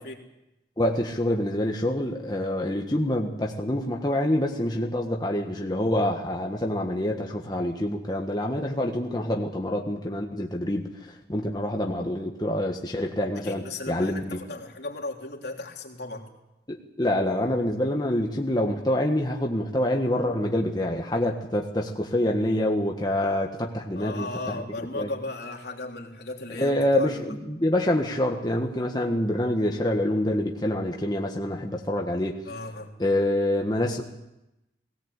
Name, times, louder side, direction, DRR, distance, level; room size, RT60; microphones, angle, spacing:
voice 1, 0.8-10.9 11.3-14.4 16.7-24.6 25.0-25.1 26.6-32.3 33.0-34.0, left 1 dB, 25° left, 1 dB, 1.5 m, -26 dB
voice 2, 13.3-16.3 23.9-27.1 32.4-33.0, left 2 dB, 65° left, 1 dB, 3.3 m, -36 dB
19.5 x 18.0 x 8.3 m, 0.92 s
head